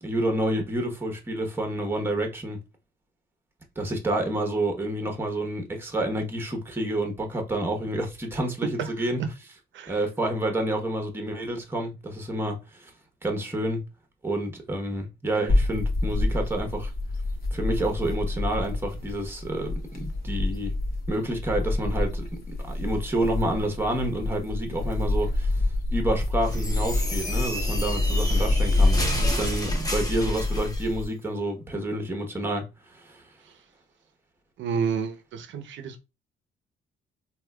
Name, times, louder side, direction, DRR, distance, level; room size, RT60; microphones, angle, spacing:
voice 1, 0.0-2.6 3.8-9.2 9.9-12.9 13.2-13.8 14.2-16.9 17.5-20.7 21.1-22.3 22.6-33.3, right 1 dB, 10° right, 1.0 m, -29 dB
sound 1, 15.5-31.1, left 2 dB, 50° left, 1.0 m, -27 dB
sound 2, 26.4-30.9, left 1 dB, 20° left, 1.0 m, -33 dB
voice 2, 34.6-36.0, right 6 dB, 70° right, 0.7 m, -30 dB
3.6 x 2.7 x 2.3 m
cardioid pair, 90°, 20 cm